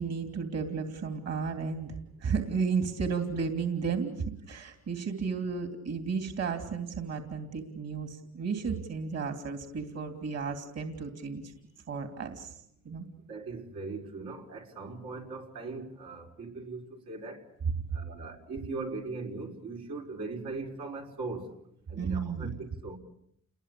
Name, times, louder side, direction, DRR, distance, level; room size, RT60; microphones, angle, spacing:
voice 1, 0.0-11.5 11.9-13.0 22.0-22.5, right 5 dB, 55° right, 3.1 m, -33 dB
voice 2, 13.3-17.5 17.9-21.6 21.9-23.0, right 3 dB, 90° right, 5.5 m, -39 dB
30.0 x 21.5 x 8.5 m
cardioid pair, 90°, 30 cm